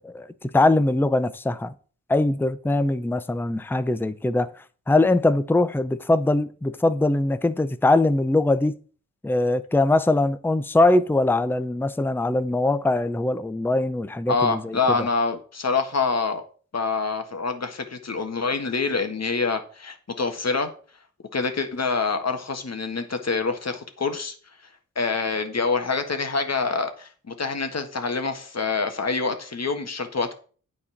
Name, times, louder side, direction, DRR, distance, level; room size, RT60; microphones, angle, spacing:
voice 1, 0.0-1.7 2.1-8.8 9.2-15.0, left 2 dB, 5° left, 0.6 m, -22 dB
voice 2, 14.3-16.4 16.7-20.7 21.3-24.3 24.9-30.3, left 4 dB, 50° left, 1.6 m, -26 dB
9.7 x 4.2 x 7.2 m
cardioid pair, 65°, 33 cm